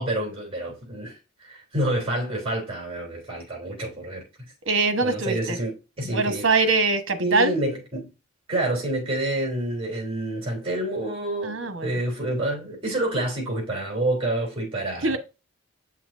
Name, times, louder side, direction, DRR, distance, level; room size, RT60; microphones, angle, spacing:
voice 1, 0.0-4.5 5.0-6.4 7.2-8.1 8.5-15.2, right 1 dB, 30° right, 3.1 m, -28 dB
voice 2, 4.6-5.6 6.0-7.5 11.4-12.0 15.0-15.2, right 3 dB, 70° right, 1.1 m, -23 dB
7.9 x 5.9 x 2.5 m
head